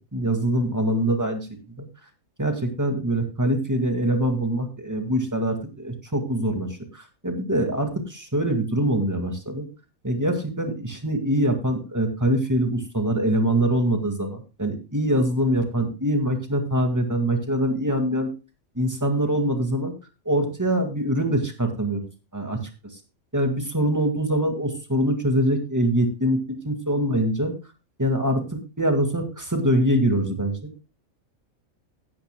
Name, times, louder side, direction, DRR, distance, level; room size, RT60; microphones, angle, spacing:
voice 1, 0.1-1.4 2.4-9.7 10.0-18.3 18.8-19.9 20.3-22.0 22.3-22.6 23.3-27.5 28.0-28.4 28.8-30.5, right 1 dB, 15° right, 5 dB, 2.0 m, -24 dB
16.0 x 10.0 x 2.3 m, 0.30 s
omnidirectional pair, 1.5 m